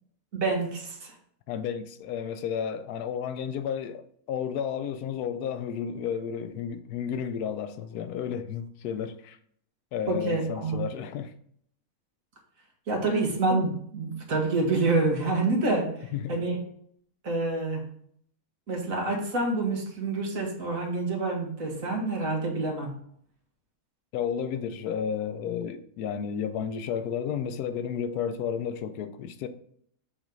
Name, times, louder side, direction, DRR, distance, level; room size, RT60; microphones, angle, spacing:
voice 1, 0.3-1.1 10.1-10.8 12.9-15.9 16.3-16.6 17.2-17.8 18.7-23.0, right 3 dB, 60° right, 1.7 m, -27 dB
voice 2, 1.5-9.4 9.9-11.3 16.1-16.4 24.1-29.5, left 8 dB, 85° left, 1.1 m, -32 dB
7.1 x 3.1 x 5.2 m
omnidirectional pair, 1.6 m